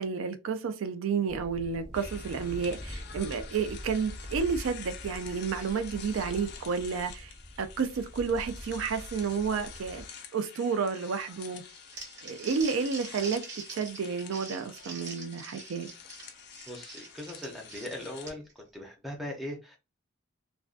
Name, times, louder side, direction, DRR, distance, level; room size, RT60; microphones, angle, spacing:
voice 1, 0.0-7.3 7.6-11.6 12.2-13.4 13.7-15.9, right 5 dB, 75° right, 0.4 m, -31 dB
sound 1, 1.3-10.1, equal, 20° right, 0.9 m, -44 dB
sound 2, 1.9-18.3, left 7 dB, 50° left, 0.4 m, -48 dB
Crumpling crinkling, 11.7-18.6, right 4 dB, 55° right, 0.7 m, -44 dB
voice 2, 16.7-19.8, left 1 dB, ahead, 0.5 m, -40 dB
2.5 x 2.2 x 2.4 m
head